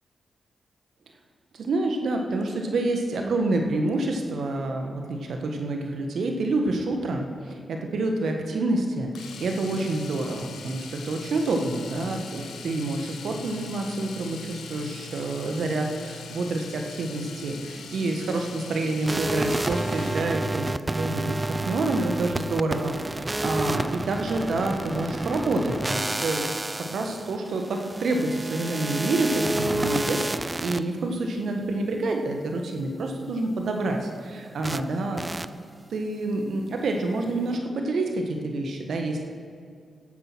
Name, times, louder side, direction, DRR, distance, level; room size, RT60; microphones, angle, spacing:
voice 1, 1.5-26.5 26.8-35.2 35.9-39.2, right 2 dB, 70° right, 3 dB, 1.4 m, -28 dB
Domestic sounds home sounds, 9.1-20.4 22.5-22.7 22.9-23.0, left 4 dB, 80° left, 1.0 m, -41 dB
sound 1, 19.1-30.8 34.6-34.8 35.2-35.5, right 2 dB, 25° right, 0.5 m, -30 dB
12.5 x 8.0 x 6.1 m, 2.2 s
supercardioid pair, 40°, 0 cm